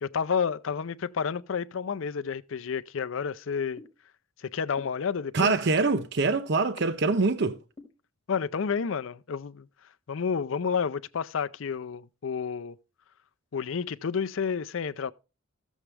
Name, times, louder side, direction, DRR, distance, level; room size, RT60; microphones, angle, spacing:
voice 1, 0.0-3.8 4.5-5.5 8.3-9.7 10.1-12.8 13.5-15.1, left 6 dB, 70° left, 0.5 m, -30 dB
sound 1, 3.8-3.9 4.8-4.9 5.8-5.9 6.8-6.9 7.8-7.9, left 3 dB, 25° left, 2.2 m, -43 dB
voice 2, 5.3-7.6, right 3 dB, 50° right, 0.6 m, -24 dB
14.0 x 7.2 x 3.3 m
head